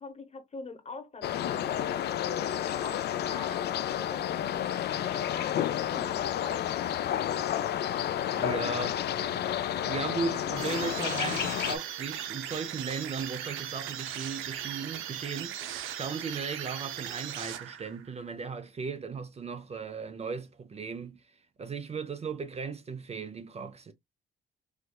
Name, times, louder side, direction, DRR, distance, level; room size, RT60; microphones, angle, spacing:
voice 1, 0.0-7.5, left 4 dB, 35° left, 0.9 m, -44 dB
sound 1, 1.2-11.8, left 11 dB, 55° left, 0.4 m, -31 dB
voice 2, 8.4-9.4 9.8-23.9, right 5 dB, 30° right, 0.5 m, -37 dB
sound 2, 10.6-18.1, right 10 dB, 90° right, 0.5 m, -38 dB
4.4 x 2.2 x 2.3 m
cardioid pair, 90°, 20 cm